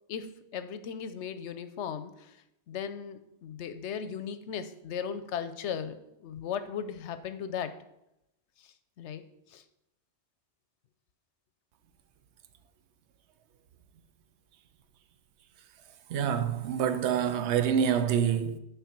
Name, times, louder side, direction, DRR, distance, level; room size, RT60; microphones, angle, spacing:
voice 1, 0.1-2.4 2.7-7.7 8.6-9.2 9.5-9.6, left 7 dB, 85° left, 0.9 m, -37 dB
voice 2, 16.1-18.6, right 8 dB, 80° right, 0.9 m, -26 dB
6.8 x 4.7 x 5.9 m
omnidirectional pair, 1.2 m